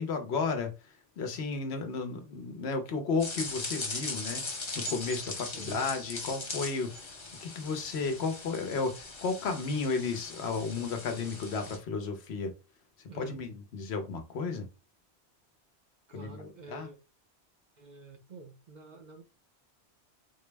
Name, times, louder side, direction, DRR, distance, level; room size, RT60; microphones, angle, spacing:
voice 1, 0.0-7.2 7.4-12.5 13.1-14.7 16.1-16.9, left 4 dB, 75° left, 1.0 m, -33 dB
sound 1, 3.2-11.8, left 3 dB, 30° left, 0.6 m, -40 dB
voice 2, 5.5-5.9 13.1-13.4 16.1-17.0 17.8-19.2, right 4 dB, 50° right, 0.6 m, -48 dB
4.0 x 2.0 x 3.3 m
omnidirectional pair, 1.1 m